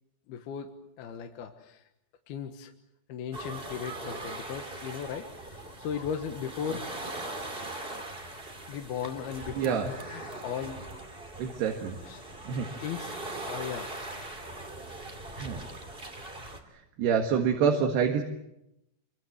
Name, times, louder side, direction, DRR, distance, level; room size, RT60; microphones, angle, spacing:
voice 1, 0.3-1.8 2.3-2.7 3.1-6.9 8.7-10.9 12.0-12.3 12.8-13.9, left 8 dB, 65° left, 5 dB, 2.9 m, -37 dB
sound 1, 3.3-16.6, right 2 dB, 15° right, 1.9 m, -41 dB
voice 2, 9.6-9.9 11.4-12.0 12.5-12.7 15.4-15.6 17.0-18.2, right 7 dB, 65° right, 3 dB, 3.5 m, -26 dB
27.0 x 24.5 x 7.9 m, 0.86 s
omnidirectional pair, 5.4 m